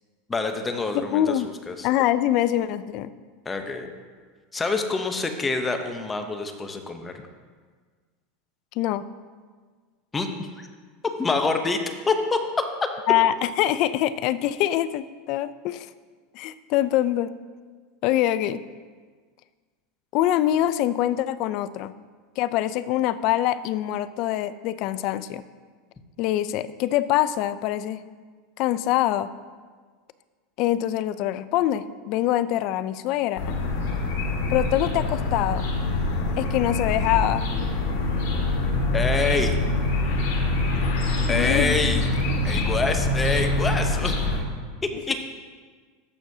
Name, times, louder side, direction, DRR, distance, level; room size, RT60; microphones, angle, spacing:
voice 1, 0.3-1.4 1.7-1.9 3.5-3.9 4.5-7.1 10.1-10.7 11.2-11.8 12.1-12.7 38.9-39.5 41.3-42.1 42.4-44.2 45.1-45.3, left 3 dB, 15° left, 6 dB, 0.8 m, -26 dB
voice 2, 0.9-1.5 1.8-3.1 8.8-9.0 13.1-15.9 16.3-17.3 18.0-18.6 20.1-21.9 22.4-25.4 26.2-28.0 28.6-29.3 30.6-33.6 34.5-35.7 36.4-37.5 41.3-42.6 44.9-45.0, left 13 dB, 55° left, 15 dB, 0.4 m, -24 dB
sound 1, 33.4-44.4, left 2 dB, 70° left, 1.8 m, -25 dB
14.0 x 6.1 x 2.7 m, 1.5 s
supercardioid pair, 125°, 0 cm